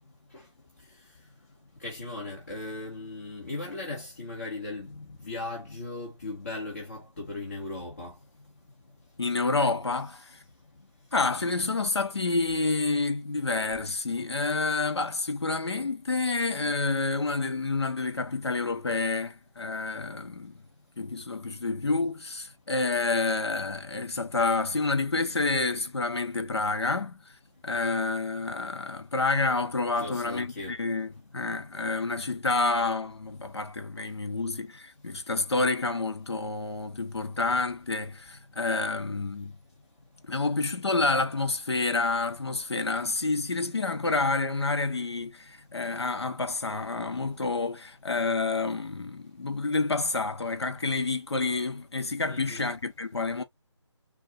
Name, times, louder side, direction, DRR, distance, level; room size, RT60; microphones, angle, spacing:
voice 1, 1.8-8.2 30.0-30.8 52.3-52.7, left 2 dB, 30° left, 2.0 m, -37 dB
voice 2, 9.2-10.4 11.1-20.6 21.0-27.3 27.6-39.6 40.3-53.4, left 3 dB, 60° left, 1.3 m, -29 dB
6.3 x 2.7 x 2.7 m
figure-of-eight pair, 175°, 15 cm